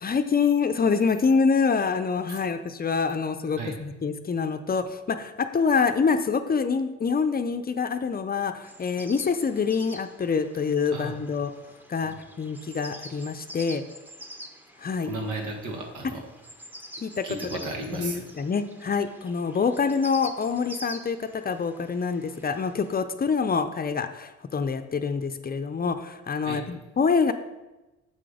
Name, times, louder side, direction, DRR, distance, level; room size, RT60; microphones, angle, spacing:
voice 1, 0.0-11.5 11.9-13.8 14.8-15.1 17.0-17.2 17.9-27.3, left 5 dB, 30° left, 9 dB, 0.6 m, -26 dB
sound 1, 8.6-23.0, equal, 5° right, 0.9 m, -46 dB
voice 2, 15.0-16.2 17.2-18.2 26.4-26.6, right 2 dB, 85° right, 2 dB, 1.7 m, -34 dB
7.4 x 5.9 x 5.0 m, 1.1 s
cardioid pair, 90°, 30 cm